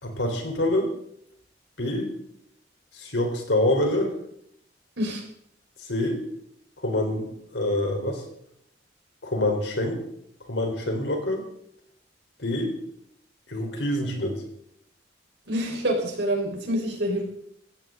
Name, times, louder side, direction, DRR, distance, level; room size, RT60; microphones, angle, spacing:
voice 1, 0.0-0.9 1.8-2.1 2.9-4.1 5.8-6.2 6.8-8.2 9.2-10.0 10.5-11.4 12.4-12.8 13.5-14.4, left 1 dB, 75° left, 3 dB, 4.0 m, -26 dB
voice 2, 15.5-17.2, equal, 70° right, 1 dB, 4.6 m, -26 dB
16.5 x 16.0 x 3.9 m, 0.71 s
head